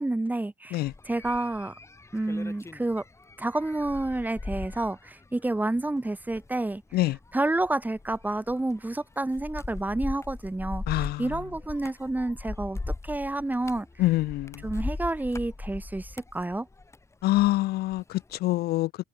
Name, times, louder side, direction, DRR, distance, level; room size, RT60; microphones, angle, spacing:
voice 1, 0.0-1.7 2.1-3.0 3.4-6.8 7.3-12.8 13.0-13.9 14.6-16.7, right 2 dB, 10° right, 2.2 m, -29 dB
sound 1, 0.9-17.6 17.9-18.4, left 3 dB, 15° left, 7.2 m, -39 dB
voice 2, 10.9-11.2 14.0-14.6 17.2-19.0, left 17 dB, 70° left, 0.4 m, -25 dB
cardioid pair, 110°, 17 cm